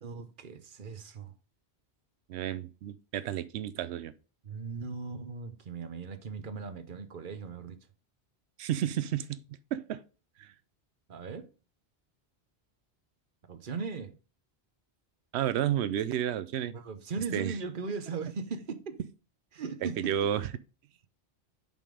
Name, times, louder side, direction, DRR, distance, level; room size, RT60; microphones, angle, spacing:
voice 1, 0.0-1.3 4.4-7.8 11.1-11.5 13.5-14.2 16.6-19.0 19.5-20.3, right 4 dB, 55° right, 1.0 m, -38 dB
voice 2, 2.3-4.1 8.6-9.4 9.7-10.0 10.4-10.5 15.3-16.7 17.3-17.5 19.8-20.5, right 10 dB, 90° right, 0.8 m, -31 dB
5.6 x 5.3 x 4.8 m
omnidirectional pair, 1.1 m